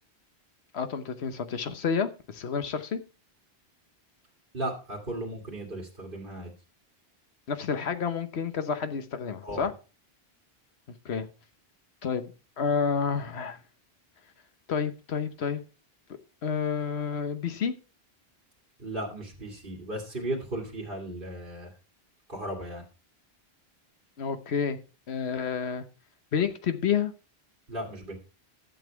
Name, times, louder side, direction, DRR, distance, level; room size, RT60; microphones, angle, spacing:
voice 1, 0.7-3.0 7.5-9.7 11.0-11.3 12.0-13.6 14.7-15.6 16.4-17.7 24.2-24.8 25.1-25.8 26.3-27.1, left 6 dB, 85° left, 1.2 m, -29 dB
voice 2, 4.5-6.5 9.4-9.7 18.8-21.7 22.3-22.8 27.7-28.2, right 1 dB, 55° right, 2.4 m, -35 dB
11.5 x 7.3 x 4.5 m
omnidirectional pair, 1.1 m